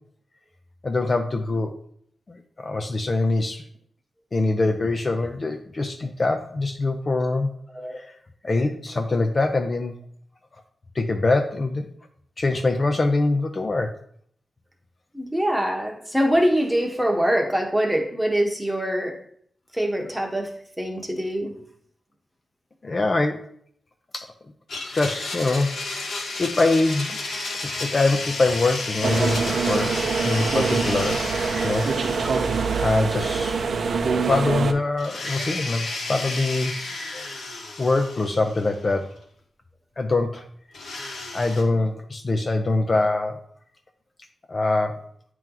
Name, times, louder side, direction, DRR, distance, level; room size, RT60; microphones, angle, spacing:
voice 1, 0.8-1.7 2.3-3.6 4.3-7.5 8.0-8.1 8.4-10.0 10.9-11.9 12.4-13.9 22.8-23.4 24.1-24.3 24.9-25.7 26.4-27.2 27.8-29.9 30.2-31.2 31.6-31.9 32.8-33.7 34.3-36.7 37.8-39.1 40.0-40.4 41.3-43.4 44.5-44.9, left 2 dB, 35° left, 4 dB, 0.5 m, -23 dB
voice 2, 15.1-19.2 19.7-21.5, equal, 5° right, 2 dB, 1.0 m, -24 dB
Domestic sounds home sounds, 24.7-33.9 34.1-34.2 35.0-38.9 40.7-41.6, left 2 dB, 75° left, 1.3 m, -32 dB
sound 1, 29.0-34.7, right 5 dB, 65° right, 0.5 m, -24 dB
9.0 x 3.0 x 3.7 m, 0.63 s
wide cardioid pair, 120°, 0 cm